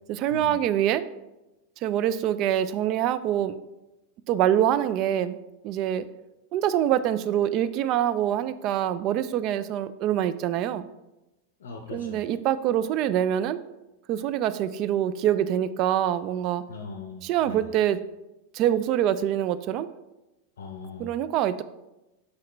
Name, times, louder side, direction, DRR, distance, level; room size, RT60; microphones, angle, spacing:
voice 1, 0.1-1.0 1.8-3.6 4.3-5.4 5.6-6.0 6.5-10.9 11.9-13.6 14.1-16.6 17.2-18.0 18.5-19.9 21.0-21.6, right 11 dB, 40° right, 14 dB, 0.3 m, -25 dB
voice 2, 11.6-12.2 16.7-17.6 20.6-21.1, left 4 dB, 65° left, 3 dB, 0.6 m, -40 dB
6.0 x 5.7 x 3.1 m, 0.99 s
figure-of-eight pair, 90°, 0 cm